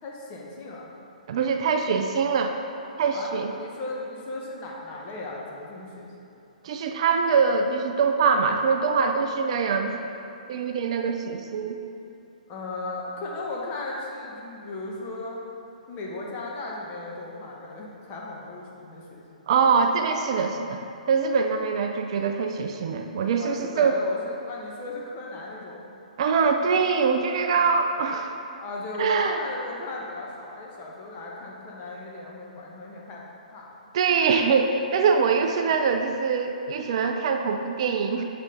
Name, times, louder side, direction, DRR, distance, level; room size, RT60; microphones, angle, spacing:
voice 1, 0.0-0.9 3.1-6.1 12.5-15.4 15.9-19.5 23.4-25.8 28.6-33.2 33.5-33.7, left 2 dB, 30° left, -3 dB, 1.2 m, -36 dB
voice 2, 1.3-2.6 3.0-3.5 6.6-10.2 10.5-11.8 19.5-20.8 21.1-24.0 26.2-28.4 29.0-29.4 33.9-38.2, right 5 dB, 45° right, 5 dB, 0.4 m, -23 dB
7.1 x 4.3 x 3.9 m, 2.9 s
figure-of-eight pair, 125°, 4 cm